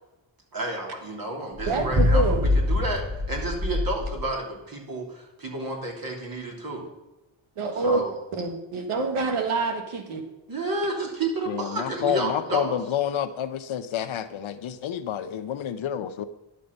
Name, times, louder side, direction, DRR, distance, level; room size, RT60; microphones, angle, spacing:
voice 1, 0.5-6.9 7.7-8.1 10.5-12.7, right 2 dB, 45° right, 0 dB, 3.1 m, -31 dB
sound 1, 1.6-4.4, left 2 dB, 5° right, 1.0 m, -24 dB
voice 2, 1.7-2.4 7.6-8.0 8.3-10.2, right 3 dB, 85° right, 5 dB, 1.6 m, -26 dB
voice 3, 11.5-16.2, left 10 dB, 70° left, 11 dB, 0.8 m, -29 dB
11.5 x 6.5 x 5.3 m, 1.0 s
cardioid pair, 85°, 49 cm